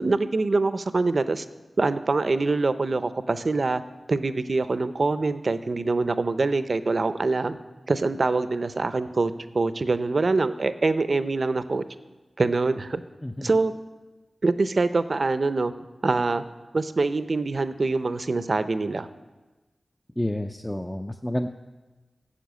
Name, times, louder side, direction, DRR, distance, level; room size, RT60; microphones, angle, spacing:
voice 1, 0.0-1.4 1.8-3.8 4.1-7.6 7.9-11.8 12.4-13.0 13.4-13.7 14.4-15.7 16.0-16.4 16.7-19.1, right 3 dB, 55° right, 12 dB, 0.6 m, -24 dB
voice 2, 20.2-21.5, left 1 dB, 10° left, 5 dB, 0.5 m, -29 dB
10.5 x 6.9 x 8.2 m, 1.2 s
wide cardioid pair, 65°, 0 cm